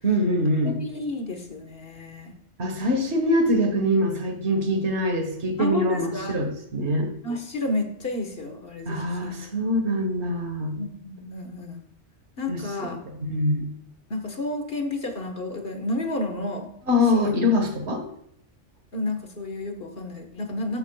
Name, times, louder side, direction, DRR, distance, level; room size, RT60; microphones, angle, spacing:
voice 1, 0.0-0.8 2.6-7.1 8.9-10.8 12.5-12.6 13.2-13.7 16.9-18.0, left 1 dB, 65° right, 5 dB, 1.7 m, -24 dB
voice 2, 0.8-2.3 5.6-6.4 7.2-9.3 10.8-11.9 12.4-13.0 14.1-16.7 17.1-17.4 18.9-20.8, left 2 dB, 50° left, 5 dB, 1.6 m, -31 dB
13.0 x 8.1 x 2.3 m, 0.76 s
omnidirectional pair, 1.2 m